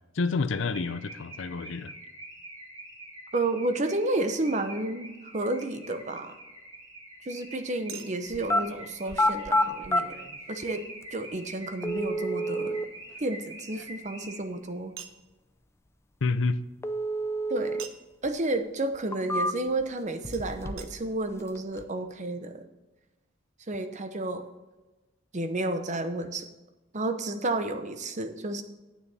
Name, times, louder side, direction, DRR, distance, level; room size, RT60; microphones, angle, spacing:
voice 1, 0.1-1.9 16.2-16.6, left 4 dB, 70° left, 14 dB, 0.6 m, -28 dB
Car / Alarm, 0.5-14.7, right 1 dB, 15° right, 2.0 m, -46 dB
voice 2, 3.3-6.4 7.3-10.2 10.5-10.8 11.1-12.8 13.2-14.9 17.5-17.8 18.2-22.6 23.7-24.5 25.3-26.5 26.9-28.6, right 2 dB, 35° right, 9 dB, 0.8 m, -31 dB
Chink clink, 5.1-5.2 7.9-11.1 12.6-14.3 15.0-15.2 17.8-18.2 20.3-20.4 20.8-20.9 21.6-21.7 21.8-21.9, right 7 dB, 85° right, 0.9 m, -48 dB
sound 1, 8.3-8.6 9.1-10.0 11.0-11.1 11.8-12.9 16.8-17.9 18.2-18.3 18.9-19.8 20.2-21.0 21.2-21.8, equal, 15° left, 0.4 m, -28 dB
9.3 x 8.9 x 4.2 m, 1.1 s
head